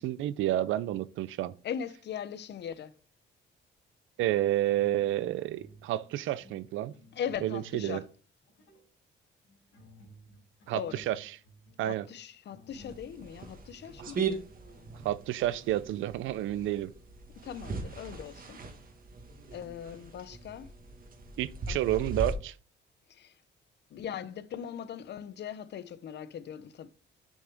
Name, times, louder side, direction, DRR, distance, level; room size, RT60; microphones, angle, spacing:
voice 1, 0.0-1.5 4.2-6.9 7.4-8.0 10.7-11.3 11.8-12.1 14.0-14.2 15.0-16.9 21.4-22.5, right 13 dB, 85° right, 0.5 m, -30 dB
voice 2, 1.6-2.9 7.1-8.0 10.7-11.0 11.9-14.3 17.4-18.6 19.5-20.7 21.7-21.8 23.1-23.4 23.9-26.9, left 8 dB, 60° left, 0.7 m, -39 dB
sound 1, 4.3-5.9 6.1-7.9 8.4-8.9 9.4-15.0, left 1 dB, 85° left, 4.0 m, -56 dB
sound 2, 12.7-22.3, right 4 dB, 45° right, 1.5 m, -39 dB
6.5 x 6.1 x 3.5 m
cardioid pair, 90°, 20 cm